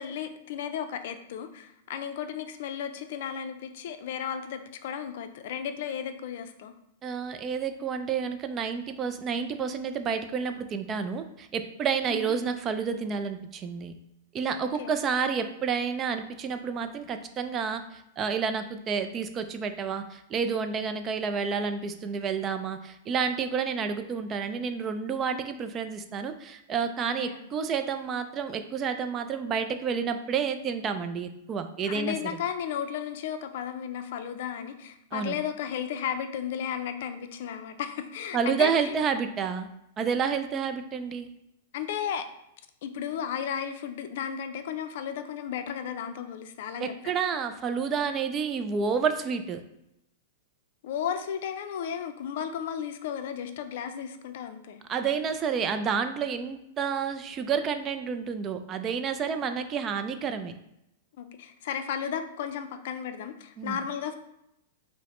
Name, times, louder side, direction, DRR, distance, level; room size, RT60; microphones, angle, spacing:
voice 1, 0.0-6.7 12.1-12.3 14.8-14.9 27.2-27.5 31.8-38.9 41.7-42.3 42.8-46.9 50.8-54.8 61.2-64.2, left 8 dB, 65° left, 8 dB, 0.4 m, -34 dB
voice 2, 7.0-13.9 14.3-32.2 35.1-35.4 38.3-39.7 40.0-41.3 46.8-49.6 54.9-60.5 63.6-63.8, right 6 dB, 30° right, 8 dB, 0.3 m, -30 dB
4.6 x 2.0 x 3.1 m, 0.82 s
hypercardioid pair, 125°, 0 cm